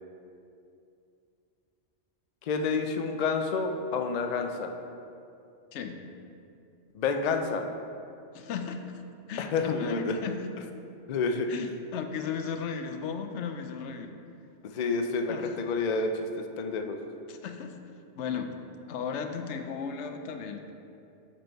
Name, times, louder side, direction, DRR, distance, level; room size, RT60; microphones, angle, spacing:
voice 1, 2.4-4.7 6.9-7.6 9.4-10.2 11.1-11.5 14.6-16.1 16.6-17.0, left 4 dB, 55° left, 5 dB, 0.5 m, -29 dB
voice 2, 5.7-6.0 8.3-8.8 9.3-10.5 11.5-14.1 15.3-15.5 17.3-17.8 18.1-18.5 18.9-20.9, left 6 dB, 80° left, 6 dB, 0.9 m, -35 dB
7.8 x 4.5 x 4.4 m, 2.6 s
omnidirectional pair, 1.2 m